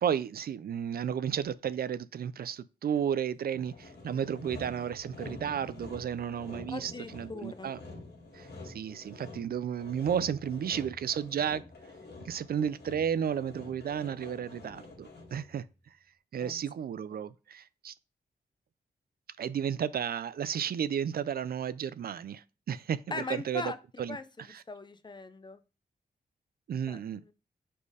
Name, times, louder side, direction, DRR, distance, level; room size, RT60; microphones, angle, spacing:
voice 1, 0.0-7.8 8.3-11.6 12.2-15.6 16.3-17.9 19.4-23.7 24.0-24.2 24.5-24.6 26.7-27.2, right 8 dB, 65° right, 0.4 m, -33 dB
Sawing, 3.5-15.6, left 2 dB, 90° left, 1.8 m, -47 dB
voice 2, 6.7-7.7 16.4-16.6 17.1-17.2 23.1-23.8 24.1-24.2 24.7-25.6 26.9-27.3, left 3 dB, 30° left, 0.5 m, -40 dB
5.2 x 4.3 x 4.8 m
wide cardioid pair, 135°, 17 cm